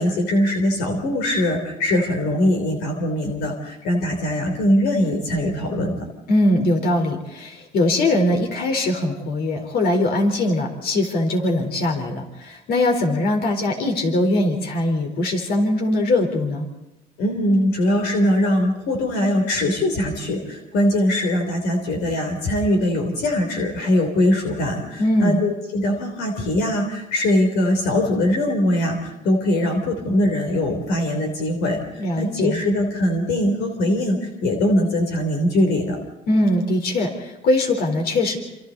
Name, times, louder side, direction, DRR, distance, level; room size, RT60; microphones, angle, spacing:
voice 1, 0.0-6.0 17.2-36.0, left 1 dB, 90° left, 3 dB, 3.7 m, -21 dB
voice 2, 6.3-16.7 25.0-25.4 32.0-32.6 36.3-38.4, left 1 dB, 65° left, 3 dB, 4.3 m, -21 dB
28.0 x 27.5 x 4.2 m, 0.96 s
cardioid pair, 110°, 17 cm